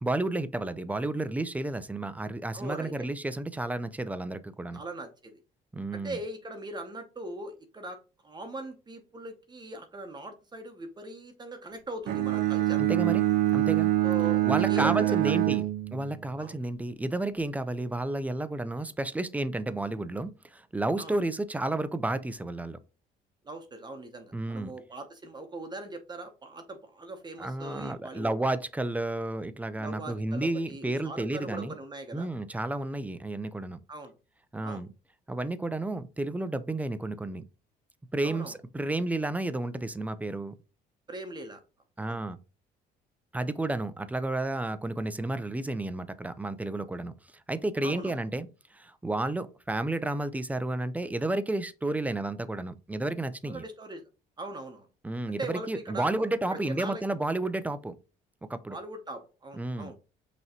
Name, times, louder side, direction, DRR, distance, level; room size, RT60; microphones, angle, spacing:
voice 1, 0.0-4.8 5.7-6.2 12.8-13.2 13.5-13.9 14.4-15.7 15.9-22.8 24.3-24.7 27.4-31.8 32.1-33.8 34.5-34.9 35.3-37.5 38.1-40.5 42.0-42.4 43.3-47.1 47.5-53.6 55.0-57.9 58.4-58.8 59.6-59.9, right 2 dB, 10° right, 0.4 m, -31 dB
voice 2, 2.5-3.1 4.7-5.3 5.9-8.0 8.2-12.8 14.0-15.4 16.4-16.6 21.0-21.1 23.4-28.3 29.8-32.3 33.9-34.1 34.6-34.9 38.2-38.5 41.1-41.6 42.1-42.2 47.8-48.2 53.5-54.0 54.4-54.9 55.3-56.1 56.5-57.0 58.7-60.0, right 2 dB, 25° right, 0.9 m, -40 dB
Bowed string instrument, 12.1-16.3, right 15 dB, 75° right, 0.9 m, -25 dB
5.6 x 3.0 x 2.9 m
cardioid pair, 110°, 17 cm